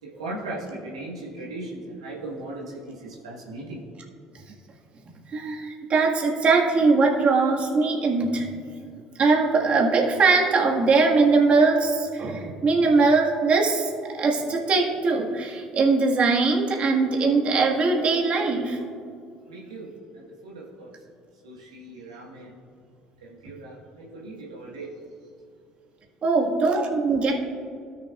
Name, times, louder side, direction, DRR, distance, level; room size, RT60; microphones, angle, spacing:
voice 1, 0.0-3.8 19.5-21.0 21.4-22.6 23.2-24.9, right 2 dB, 85° right, -4 dB, 1.4 m, -38 dB
voice 2, 5.3-8.4 9.2-18.8 26.2-27.4, right 4 dB, 45° right, -1 dB, 1.6 m, -21 dB
16.5 x 6.6 x 2.4 m, 2.4 s
hypercardioid pair, 60°, 3 cm